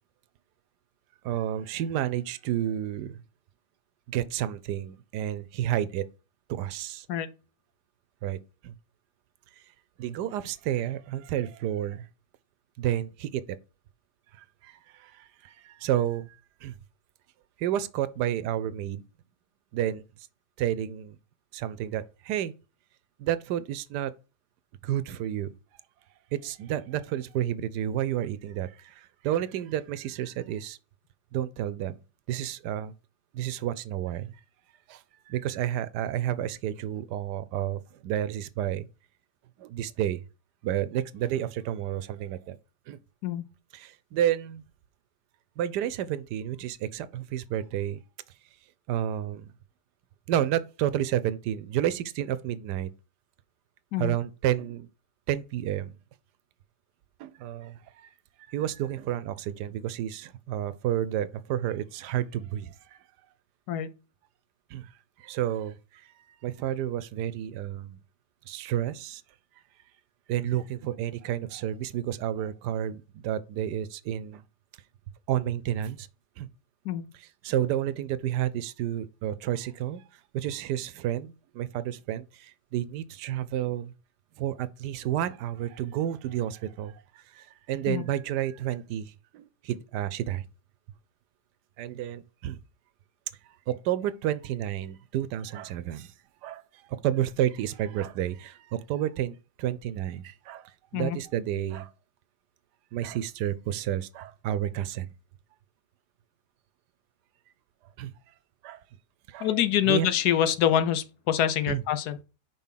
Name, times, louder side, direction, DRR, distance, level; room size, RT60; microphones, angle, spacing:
voice 1, 1.2-3.2 4.1-6.1 6.5-7.1 8.2-8.8 10.0-12.1 12.8-13.6 14.3-16.7 17.6-19.0 19.7-20.0 20.6-21.2 21.5-22.5 23.2-24.1 24.8-25.5 26.3-30.8 31.3-32.0 32.3-32.9 33.3-34.4 34.9-38.9 39.6-40.2 40.6-42.6 42.9-43.0 43.7-44.6 45.6-48.0 48.9-49.5 50.3-52.9 54.0-54.9 55.3-56.0 57.2-58.1 58.5-63.0 64.7-64.9 65.2-66.0 66.4-68.0 68.5-69.2 70.3-74.4 75.3-76.1 76.4-76.5 77.2-80.0 80.3-83.9 84.4-90.4 91.8-92.6 93.7-96.1 96.4-96.6 96.9-101.9 102.9-105.1 108.0-108.1 108.6-108.8 109.3-109.5 109.8-110.1 111.7-111.8, right 11 dB, 80° right, 1.2 m, -31 dB
voice 2, 109.4-112.2, left 10 dB, 75° left, 1.2 m, -25 dB
5.4 x 4.8 x 5.6 m
omnidirectional pair, 1.8 m